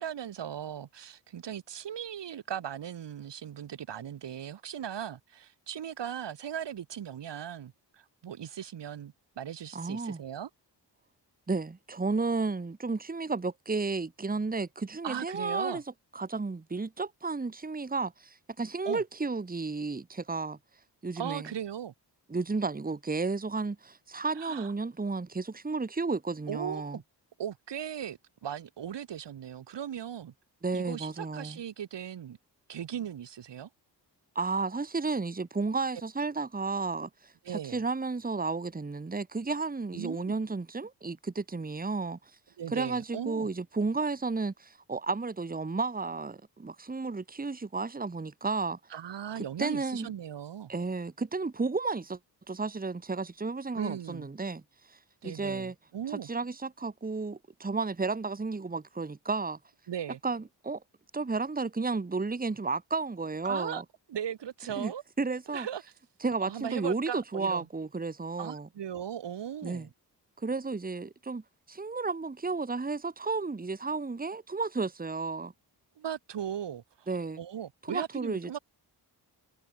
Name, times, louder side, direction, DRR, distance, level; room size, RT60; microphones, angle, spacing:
voice 1, 0.0-10.5 15.0-15.8 18.8-19.0 21.2-21.9 24.4-24.7 26.5-27.0 27.4-30.3 30.7-32.4 32.7-33.7 37.4-37.8 39.9-40.3 42.6-43.5 48.9-50.7 53.7-54.3 55.2-56.3 59.9-60.2 63.4-63.8 64.1-65.0 65.5-65.8 66.4-67.7 68.4-69.9 76.0-77.1 77.4-78.6, right 9 dB, 85° right, 3.1 m, -38 dB
voice 2, 9.7-10.2 11.5-15.8 16.1-20.6 21.0-21.5 22.3-27.0 30.6-31.6 34.4-42.2 42.7-48.8 49.6-50.1 50.7-52.2 52.5-54.6 54.9-55.0 55.2-55.7 56.1-59.6 60.2-60.8 61.1-63.8 64.8-64.9 65.2-65.7 66.2-68.7 69.6-69.9 70.4-71.4 71.7-75.5 77.1-77.4 77.9-78.6, right 3 dB, 20° right, 1.8 m, -32 dB
wide cardioid pair, 125°, 41 cm